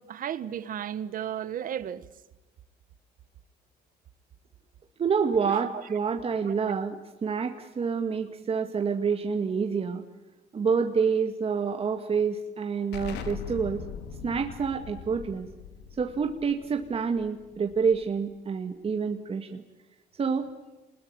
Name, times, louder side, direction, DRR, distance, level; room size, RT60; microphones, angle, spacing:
voice 1, 0.0-2.0 5.4-5.8 6.6-6.7, right 10 dB, 55° right, 1.6 m, -34 dB
voice 2, 5.0-10.0 10.5-13.8 14.2-15.5 16.0-19.6 20.2-20.5, right 6 dB, 35° right, 2.0 m, -28 dB
Explosion, 12.9-18.3, left 7 dB, 85° left, 2.5 m, -41 dB
28.5 x 21.0 x 9.7 m
cardioid pair, 110°, 17 cm